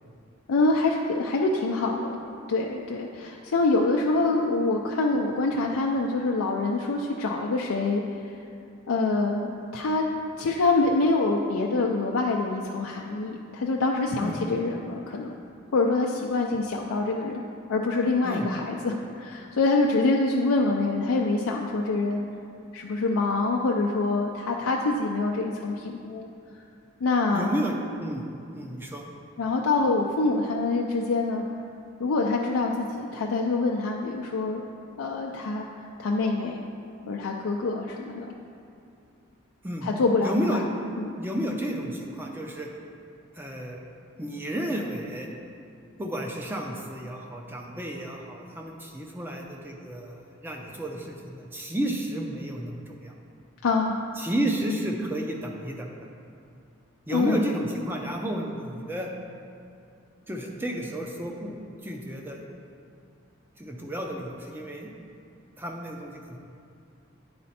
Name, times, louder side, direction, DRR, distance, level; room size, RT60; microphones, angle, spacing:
voice 1, 0.5-2.2 2.5-8.3 8.9-10.0 10.4-15.3 15.7-17.4 17.7-22.2 22.7-26.3 27.0-27.5 29.4-31.4 32.0-34.6 35.0-35.6 36.0-36.6 37.1-38.3 39.8-40.6 41.0-41.1 53.6-54.0 57.1-57.4, left 3 dB, 80° left, -1 dB, 0.4 m, -25 dB
voice 2, 27.3-28.2 28.5-29.0 39.6-39.9 40.2-40.7 41.2-42.7 43.3-43.8 44.2-45.3 46.0-53.1 54.2-56.1 57.1-59.1 60.3-62.4 63.6-64.9 65.6-66.4, equal, 10° right, 1 dB, 0.5 m, -32 dB
9.5 x 4.2 x 4.2 m, 2.5 s
head